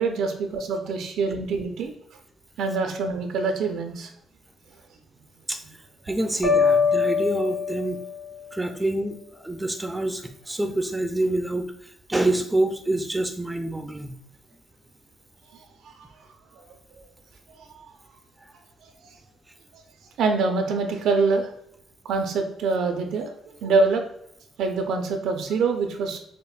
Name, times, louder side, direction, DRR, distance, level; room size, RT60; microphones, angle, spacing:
voice 1, 0.0-1.9 2.6-4.1 16.9-17.1 17.8-17.9 20.2-21.5 22.0-23.3 23.6-24.0 24.6-26.2, right 4 dB, 80° right, 4 dB, 0.5 m, -25 dB
voice 2, 6.0-8.0 8.5-14.1 18.4-18.5, right 1 dB, 10° right, 6 dB, 0.4 m, -27 dB
sound 1, 6.4-8.3, left 5 dB, 50° left, 1.5 m, -22 dB
5.1 x 2.1 x 2.3 m, 0.72 s
cardioid pair, 90°, 0 cm